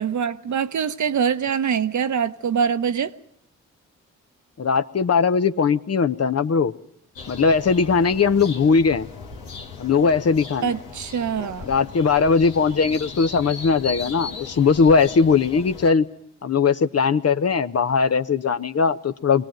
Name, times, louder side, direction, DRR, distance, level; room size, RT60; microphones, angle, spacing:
voice 1, 0.0-3.1 10.6-11.6, right 7 dB, 60° right, 1.0 m, -24 dB
voice 2, 4.6-6.7 7.3-9.1 9.8-10.7 11.6-16.1 16.4-19.4, left 5 dB, 50° left, 1.0 m, -19 dB
sound 1, 7.2-15.9, left 4 dB, 85° left, 1.7 m, -37 dB
22.0 x 17.5 x 9.1 m
supercardioid pair, 45°, 33 cm